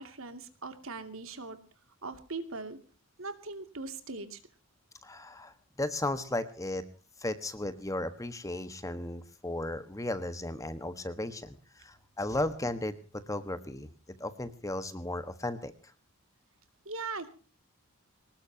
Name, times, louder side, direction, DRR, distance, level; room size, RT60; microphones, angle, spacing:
voice 1, 0.0-1.6 2.0-2.8 3.2-4.4 16.8-17.3, right 3 dB, 65° right, 9 dB, 2.5 m, -40 dB
voice 2, 5.0-6.8 7.2-13.9 14.2-15.7, left 1 dB, 15° left, 11 dB, 1.3 m, -35 dB
24.0 x 19.5 x 2.8 m, 0.36 s
head